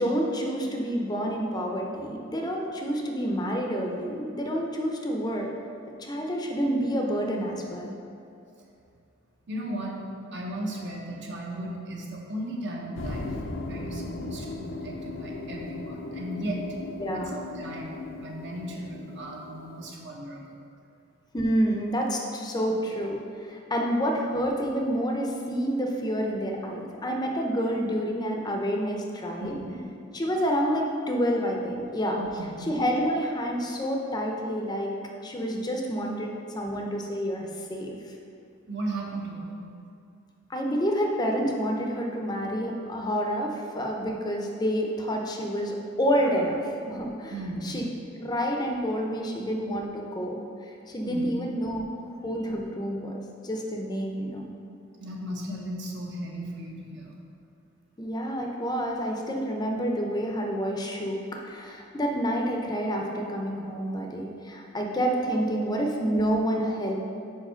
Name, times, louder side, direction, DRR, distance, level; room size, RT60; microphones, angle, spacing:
voice 1, 0.0-5.5 6.0-7.9 17.0-17.4 21.3-29.5 30.1-32.2 32.7-34.9 35.2-38.0 40.5-47.3 47.6-47.9 48.2-50.4 50.9-51.8 52.2-53.2 53.4-54.5 58.0-67.0, equal, 20° left, 1 dB, 0.5 m, -28 dB
voice 2, 9.5-10.0 10.3-13.4 13.7-16.7 17.1-20.6 29.4-29.8 32.1-32.6 38.7-39.6 47.3-47.8 51.0-51.3 55.0-57.2 65.3-65.5, right 1 dB, 60° right, -1 dB, 1.0 m, -36 dB
sound 1, 13.0-19.9, left 2 dB, 70° left, 0.6 m, -37 dB
4.8 x 4.6 x 5.6 m, 2.5 s
head